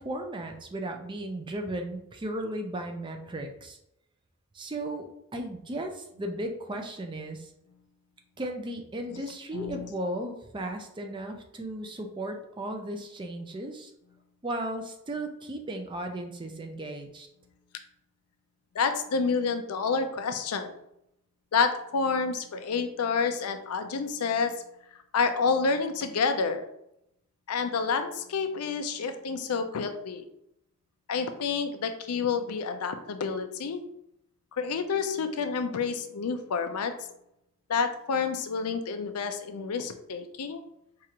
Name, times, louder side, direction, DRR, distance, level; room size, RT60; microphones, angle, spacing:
voice 1, 0.0-3.8 4.5-5.1 5.3-7.5 8.4-13.9 14.4-17.3, right 1 dB, 20° right, 4 dB, 0.4 m, -35 dB
voice 2, 9.5-9.9 14.7-14.9 18.7-20.7 21.5-24.5 25.1-26.6 27.5-30.2 31.1-33.8 34.5-36.9 37.7-40.6, left 5 dB, 85° left, 8 dB, 0.5 m, -29 dB
4.6 x 2.4 x 2.8 m, 0.80 s
head